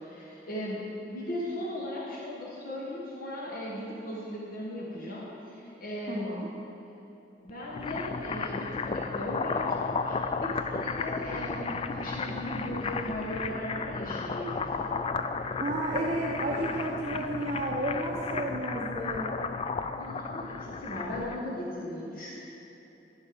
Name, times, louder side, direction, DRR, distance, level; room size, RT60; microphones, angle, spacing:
voice 1, 0.0-6.3 7.4-15.0 19.9-22.3, left 1 dB, 55° left, -5 dB, 1.4 m, -37 dB
voice 2, 6.1-6.5 15.6-19.4, right 1 dB, 35° right, -4 dB, 0.9 m, -32 dB
sound 1, 7.5-21.4, left 4 dB, 30° left, 0.3 m, -34 dB
15.0 x 5.6 x 5.2 m, 3.0 s
head